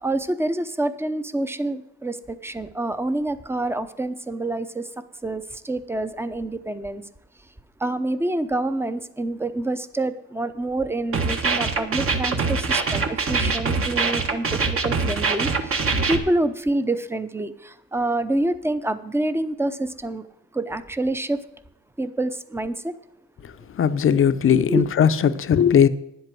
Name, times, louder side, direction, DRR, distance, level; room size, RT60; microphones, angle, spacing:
voice 1, 0.0-7.0 7.8-20.3 20.5-21.4 22.0-22.9 24.7-24.9, right 2 dB, 10° right, 0.7 m, -27 dB
sound 1, 11.1-16.2, right 4 dB, 45° right, 1.3 m, -23 dB
voice 2, 23.4-25.9, left 8 dB, 45° left, 0.7 m, -19 dB
10.0 x 8.0 x 6.1 m
cardioid pair, 90°, 30 cm